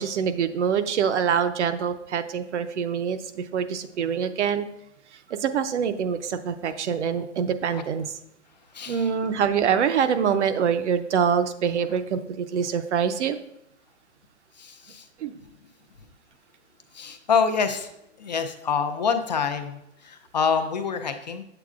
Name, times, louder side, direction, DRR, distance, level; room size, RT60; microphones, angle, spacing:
voice 1, 0.0-4.7 5.3-8.1 8.9-13.4 15.2-15.3, right 7 dB, 70° right, 10 dB, 0.7 m, -25 dB
voice 2, 8.7-9.1 14.6-15.1 16.9-17.9 18.2-21.4, left 6 dB, 40° left, 7 dB, 0.4 m, -26 dB
8.1 x 7.8 x 2.4 m, 0.80 s
hypercardioid pair, 170°, 37 cm